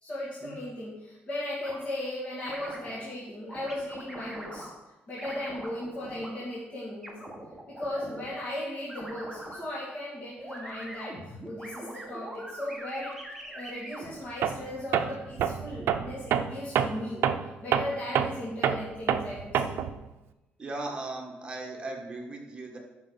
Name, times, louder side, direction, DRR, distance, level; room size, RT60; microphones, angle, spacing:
voice 1, 0.0-4.7 5.1-7.3 7.7-11.2 11.4-13.1 13.4-17.2 17.6-19.8, left 1 dB, 35° left, -7 dB, 2.5 m, -37 dB
sound 1, 1.6-1.8 2.4-3.0 3.5-4.7 5.2-6.3 7.0-8.3 8.9-9.6 10.4-14.1, right 1 dB, ahead, 1.7 m, -42 dB
Tools, 14.4-14.7 14.9-20.0, right 8 dB, 70° right, 0.5 m, -27 dB
voice 2, 20.6-22.8, right 2 dB, 25° right, 0 dB, 1.6 m, -37 dB
13.0 x 6.1 x 4.1 m, 1.0 s
cardioid pair, 140°, 4 cm